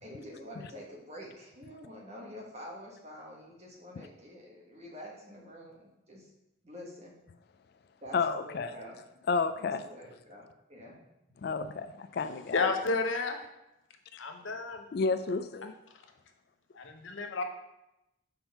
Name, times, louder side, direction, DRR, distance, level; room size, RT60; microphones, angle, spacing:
voice 1, 0.0-6.3 6.6-7.1 8.0-9.0 9.5-11.0, equal, 35° right, -2 dB, 1.4 m, -47 dB
voice 2, 8.1-8.7 9.3-9.8 11.4-12.6 14.9-15.7, left 4 dB, 50° left, 10 dB, 0.3 m, -31 dB
voice 3, 12.2-13.4 14.2-14.9 16.7-17.4, left 3 dB, 75° left, 5 dB, 0.8 m, -32 dB
5.8 x 4.4 x 5.4 m, 0.90 s
head